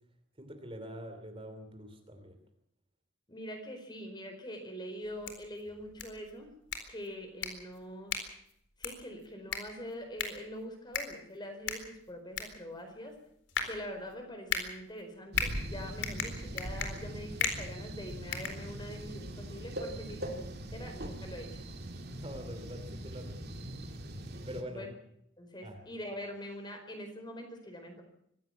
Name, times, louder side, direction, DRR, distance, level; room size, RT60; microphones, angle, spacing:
voice 1, 0.4-2.4 20.1-20.2 22.1-23.5 24.5-24.9 25.6-25.8, equal, 25° right, 5 dB, 2.9 m, -44 dB
voice 2, 3.3-6.5 6.9-8.2 8.8-13.2 13.6-21.6 24.7-24.9 25.4-28.0, equal, 20° left, 5 dB, 4.5 m, -44 dB
sound 1, 5.0-19.2, left 6 dB, 60° left, 4.1 m, -39 dB
sound 2, 15.3-24.6, right 1 dB, 50° right, 2.5 m, -41 dB
24.5 x 15.5 x 7.3 m, 0.72 s
head